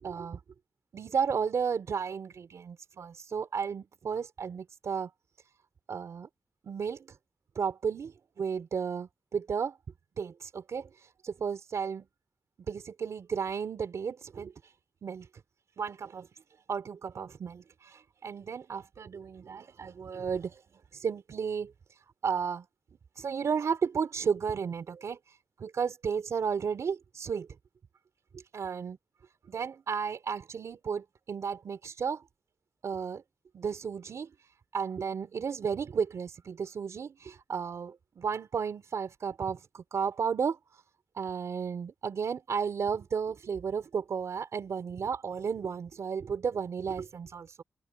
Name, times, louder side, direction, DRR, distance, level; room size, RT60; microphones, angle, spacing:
voice 1, 0.0-0.4 0.9-5.1 5.9-6.3 6.6-7.2 7.5-9.8 10.2-12.1 12.7-14.7 15.0-15.3 15.8-16.3 16.7-20.6 20.9-21.7 22.2-22.7 23.2-27.5 28.3-29.0 29.5-32.2 32.8-33.2 33.5-34.3 34.7-40.8 41.1-47.6, right 6 dB, 70° right, 4.0 m, -33 dB
wide cardioid pair, 155°, 5 cm